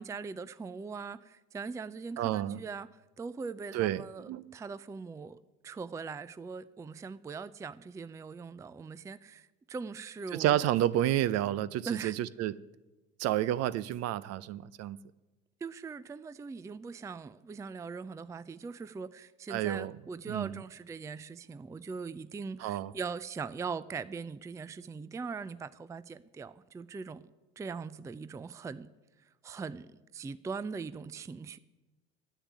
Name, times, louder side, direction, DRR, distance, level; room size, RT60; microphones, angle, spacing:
voice 1, 0.0-10.7 11.9-12.1 15.6-28.9 29.4-31.6, right 5 dB, 10° right, 0.4 m, -41 dB
voice 2, 2.2-2.6 3.7-4.6 10.3-12.6 13.2-15.0 19.5-20.0 20.3-20.6 22.6-22.9, right 13 dB, 50° right, 0.6 m, -30 dB
10.0 x 8.4 x 9.7 m
hypercardioid pair, 80°, 32 cm